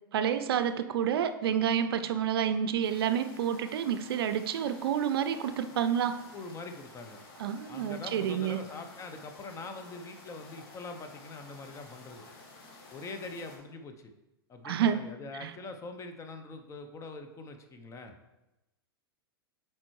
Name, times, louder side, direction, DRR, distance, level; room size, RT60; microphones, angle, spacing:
voice 1, 0.1-6.2 7.4-8.6 14.6-15.1 15.4-15.5, right 9 dB, 70° right, 11 dB, 0.4 m, -29 dB
sound 1, 2.8-13.6, left 3 dB, 60° left, 1.4 m, -52 dB
voice 2, 6.3-7.2 7.7-12.3 12.9-14.1 14.5-18.1, left 3 dB, 25° left, 6 dB, 0.6 m, -43 dB
7.4 x 4.5 x 3.1 m, 0.98 s
hypercardioid pair, 105°, 13 cm